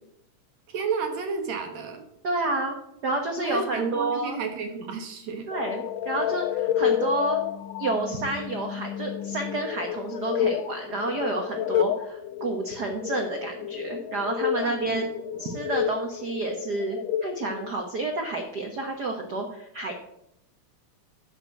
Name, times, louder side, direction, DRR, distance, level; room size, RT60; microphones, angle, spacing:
voice 1, 0.7-2.0 3.4-5.5 14.6-15.3, right 5 dB, 60° right, 5 dB, 2.4 m, -31 dB
voice 2, 2.2-2.7 3.0-4.4 5.5-7.4 7.8-15.0 15.4-19.9, right 2 dB, 85° right, 4 dB, 0.9 m, -30 dB
sound 1, 5.5-17.7, left 10 dB, 80° left, 1.6 m, -30 dB
11.0 x 6.6 x 7.6 m, 0.80 s
omnidirectional pair, 3.7 m